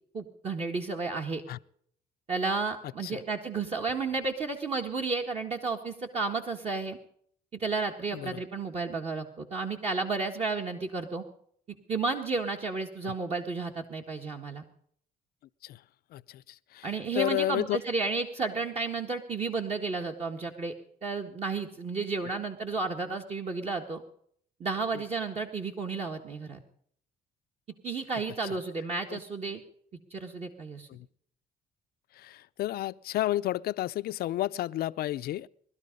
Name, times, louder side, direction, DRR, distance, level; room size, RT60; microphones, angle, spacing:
voice 1, 0.1-1.4 2.3-7.0 7.6-11.2 11.9-14.6 16.8-20.7 21.0-24.0 24.6-26.6 27.8-29.6 30.1-30.9, right 4 dB, 40° right, 1.8 m, -32 dB
voice 2, 16.1-16.9 17.1-17.8 24.9-25.0 29.1-29.2 30.9-31.1 32.2-35.5, left 15 dB, 65° left, 0.5 m, -31 dB
20.5 x 12.5 x 5.3 m
cardioid pair, 110°, 17 cm